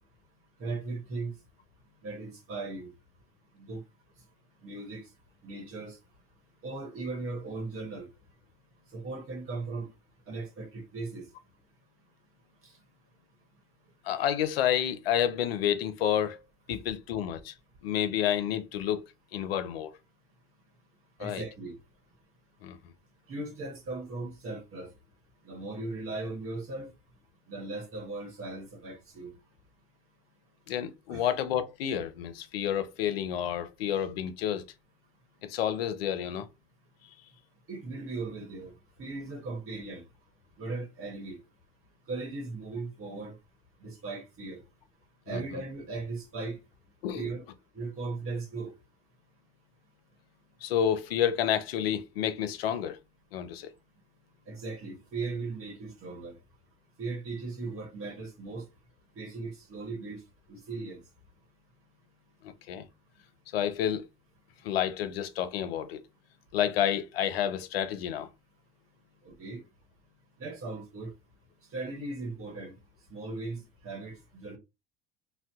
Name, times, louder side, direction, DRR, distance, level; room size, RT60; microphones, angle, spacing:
voice 1, 0.6-1.3 2.0-2.9 3.5-3.8 4.6-5.1 5.4-6.0 6.6-8.1 8.9-9.9 10.3-11.2 12.6-12.7 16.7-16.8 21.2-21.7 23.3-24.9 25.4-26.9 27.5-29.3 31.1-31.3 37.7-38.7 39.0-40.0 40.6-41.4 42.1-43.3 43.8-44.6 45.3-46.6 47.1-47.5 47.7-48.7 54.5-56.4 57.0-58.6 59.2-60.2 60.5-61.0 69.2-69.6 70.4-71.1 71.7-72.7 73.1-74.6, right 3 dB, 50° right, 1.2 m, -38 dB
voice 2, 14.0-16.4 16.7-17.5 17.8-19.9 21.2-21.4 22.6-22.8 30.7-34.6 35.4-36.5 45.3-45.4 47.0-47.3 50.6-53.0 53.3-53.7 62.4-62.9 63.5-64.1 64.6-66.0 66.5-68.3, left 10 dB, 90° left, 0.5 m, -30 dB
2.7 x 2.2 x 3.4 m
hypercardioid pair, 80°, 29 cm